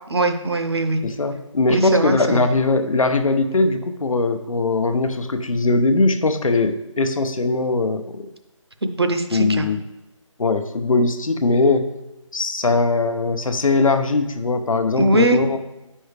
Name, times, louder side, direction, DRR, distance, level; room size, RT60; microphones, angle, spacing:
voice 1, 0.1-1.0 1.7-2.5 8.8-9.7 15.0-15.4, right 1 dB, 50° right, 8 dB, 0.7 m, -20 dB
voice 2, 1.0-8.3 9.3-9.8 10.4-11.9 12.3-15.6, left 3 dB, 85° left, 7 dB, 0.8 m, -20 dB
8.8 x 5.4 x 3.4 m, 1.0 s
figure-of-eight pair, 180°, 17 cm